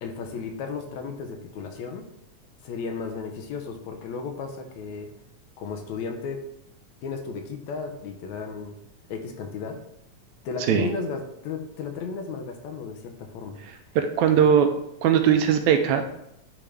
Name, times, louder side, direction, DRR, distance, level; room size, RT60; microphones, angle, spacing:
voice 1, 0.0-2.1 2.6-5.1 5.6-6.5 7.0-8.8 9.1-9.8 10.5-13.6, left 5 dB, 75° left, 4 dB, 2.0 m, -34 dB
voice 2, 14.0-14.7 15.0-16.1, right 8 dB, 80° right, 7 dB, 1.7 m, -19 dB
10.0 x 3.6 x 3.4 m, 0.81 s
omnidirectional pair, 3.5 m